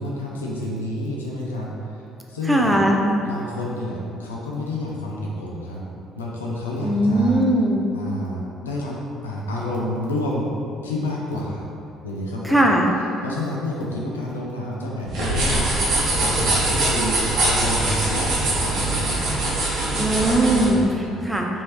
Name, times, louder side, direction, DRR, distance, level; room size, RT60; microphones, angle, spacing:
voice 1, 0.0-2.0 2.3-2.8 3.2-5.9 6.1-7.4 7.9-9.0 9.2-10.5 10.7-11.7 12.0-12.7 13.2-19.2 20.6-21.2, left 1 dB, 80° left, -3 dB, 0.4 m, -29 dB
voice 2, 2.5-3.0 6.8-7.9 12.4-12.9 20.0-21.5, right 1 dB, 10° right, 1 dB, 0.5 m, -19 dB
sound 1, 15.1-20.7, right 2 dB, 60° right, 1.0 m, -22 dB
4.1 x 2.7 x 3.2 m, 2.6 s
figure-of-eight pair, 50°, 0 cm